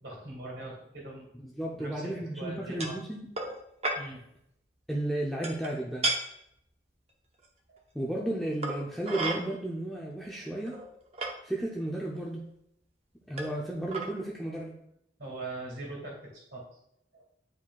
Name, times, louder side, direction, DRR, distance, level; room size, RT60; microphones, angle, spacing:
voice 1, 0.0-1.3 1.7-3.0 4.0-4.2 7.7-7.8 15.2-16.7 17.1-17.2, right 2 dB, 70° right, -2 dB, 2.2 m, -41 dB
voice 2, 1.4-3.3 4.9-6.1 7.9-10.8 11.4-12.5 13.3-14.8, right 1 dB, ahead, -4 dB, 0.5 m, -33 dB
sound 1, 2.8-3.0 3.4-3.6 3.8-4.0 5.4-5.7 6.0-6.2 7.4-7.5 8.6-9.4 10.2-10.3 10.7-11.3 12.2-12.3 13.4-13.6 13.9-14.1, right 2 dB, 35° right, 0.8 m, -32 dB
9.1 x 4.8 x 2.3 m, 0.76 s
head